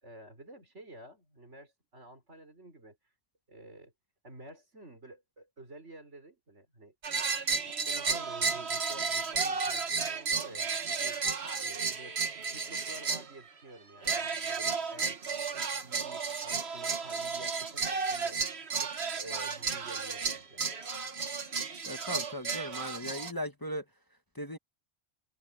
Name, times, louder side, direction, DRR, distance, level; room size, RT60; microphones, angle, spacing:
voice 1, 0.0-3.0 3.5-3.9 4.2-6.9 7.7-11.3 11.6-17.8 18.1-18.4 18.8-20.7, right 1 dB, 80° right, 5.7 m, -50 dB
sound 1, 7.0-13.3 14.0-23.3, right 5 dB, 65° right, 1.7 m, -33 dB
voice 2, 21.9-23.8 24.3-24.6, equal, 20° left, 1.3 m, -37 dB
omnidirectional pair, 1.2 m